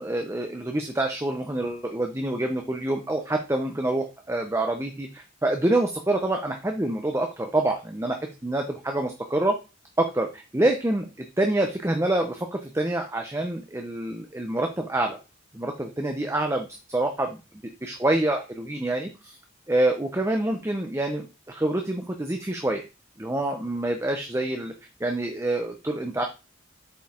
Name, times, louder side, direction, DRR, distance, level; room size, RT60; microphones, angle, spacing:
voice 1, 0.0-8.2 8.4-9.6 10.0-15.2 15.5-17.4 17.8-19.4 19.7-22.8 23.2-24.7 25.0-26.2, right 1 dB, 15° right, 4 dB, 0.6 m, -26 dB
7.6 x 4.5 x 3.6 m, 0.29 s
head